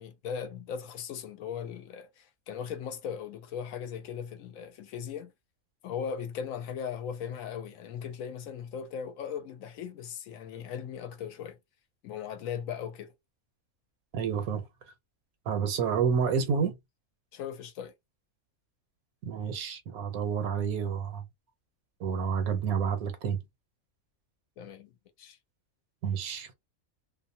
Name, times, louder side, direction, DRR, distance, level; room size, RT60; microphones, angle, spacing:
voice 1, 0.0-5.3 5.8-11.6 12.0-13.1 17.3-17.9 24.6-24.9 25.2-25.4, left 7 dB, 75° left, 1.0 m, -38 dB
voice 2, 14.1-14.6 15.5-16.7 19.2-21.2 22.0-23.4 26.0-26.5, right 6 dB, 85° right, 1.2 m, -29 dB
2.6 x 2.1 x 2.6 m
omnidirectional pair, 1.5 m